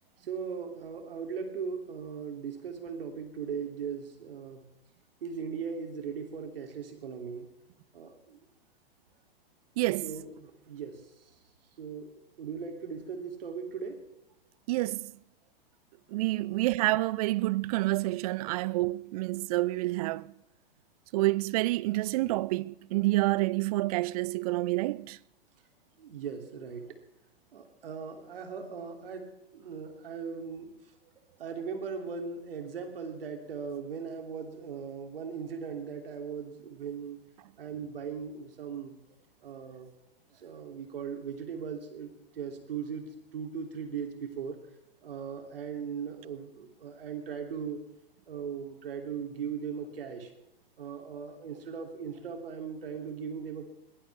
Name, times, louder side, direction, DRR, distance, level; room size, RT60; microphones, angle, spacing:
voice 1, 0.2-4.6 5.2-7.5 7.9-8.4 10.0-11.0 11.8-12.1 12.4-14.0 16.3-16.6 18.5-18.6 26.0-26.9 27.5-29.3 29.5-30.7 31.4-37.2 37.6-38.9 39.4-39.9 40.4-44.6 45.0-47.8 48.3-50.3 50.8-53.7, right 6 dB, 70° right, 3.1 m, -38 dB
voice 2, 9.8-10.1 14.7-15.1 16.1-20.3 21.1-25.2, right 19 dB, 40° right, 0.5 m, -28 dB
21.5 x 18.5 x 3.5 m
hypercardioid pair, 110°, 30 cm